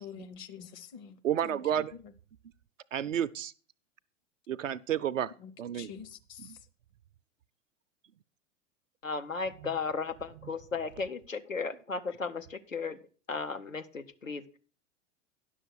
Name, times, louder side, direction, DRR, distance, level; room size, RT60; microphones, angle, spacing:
voice 1, 0.0-1.6 5.4-6.5, left 8 dB, 40° left, 0.9 m, -47 dB
voice 2, 1.2-1.9 2.9-3.5 4.5-5.3 5.6-6.0 6.4-6.6 9.6-9.7 10.4-10.5, right 10 dB, 75° right, 0.5 m, -31 dB
voice 3, 9.0-13.0 13.3-14.6, left 4 dB, 90° left, 0.9 m, -35 dB
10.5 x 6.3 x 5.9 m
figure-of-eight pair, 100°, 39 cm